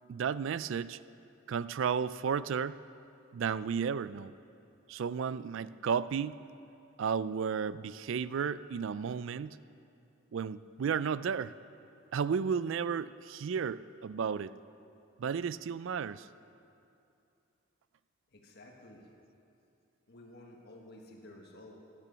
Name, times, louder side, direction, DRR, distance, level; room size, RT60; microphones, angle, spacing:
voice 1, 0.1-1.0 1.5-2.8 3.3-4.3 4.9-6.4 7.0-9.6 10.3-11.5 12.1-14.5 15.2-16.3, right 6 dB, 65° right, 16 dB, 0.3 m, -33 dB
voice 2, 18.3-19.1 20.1-21.7, left 1 dB, 50° left, 0 dB, 1.5 m, -52 dB
12.0 x 12.0 x 6.9 m, 2.7 s
head